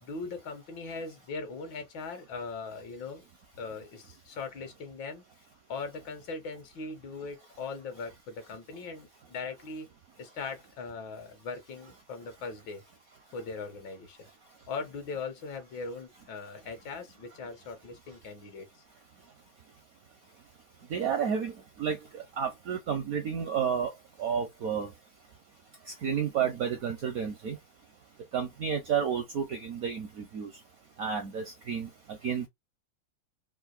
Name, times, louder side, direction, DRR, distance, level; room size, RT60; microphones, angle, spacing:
voice 1, 0.0-3.2 3.6-5.2 5.7-9.9 10.2-12.8 13.3-14.2 14.7-18.7, left 4 dB, 70° left, 1.7 m, -40 dB
voice 2, 20.9-21.5 21.8-23.9 24.2-24.9 26.0-27.6 28.3-30.5 31.0-31.9 32.2-32.5, right 7 dB, 70° right, 0.8 m, -31 dB
3.9 x 2.5 x 2.4 m
omnidirectional pair, 2.2 m